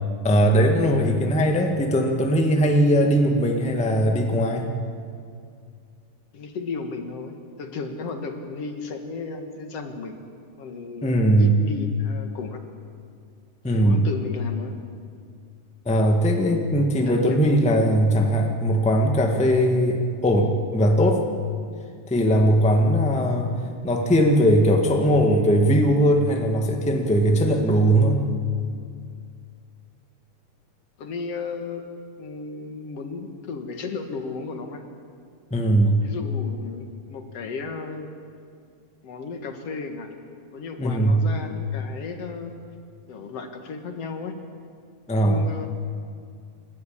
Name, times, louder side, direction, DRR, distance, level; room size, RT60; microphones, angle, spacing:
voice 1, 0.2-4.8 11.0-11.6 13.6-14.0 15.8-21.2 22.1-28.2 35.5-36.0 40.8-41.2 45.1-45.4, equal, 5° left, 2 dB, 0.9 m, -20 dB
voice 2, 6.3-10.2 10.6-12.6 13.7-14.8 17.0-17.4 17.7-18.0 31.0-31.8 32.2-34.8 36.0-38.1 39.0-40.1 40.5-42.5 43.1-44.4 45.1-45.7, left 4 dB, 55° left, 5 dB, 2.4 m, -34 dB
28.5 x 13.0 x 8.7 m, 2.3 s
omnidirectional pair, 3.5 m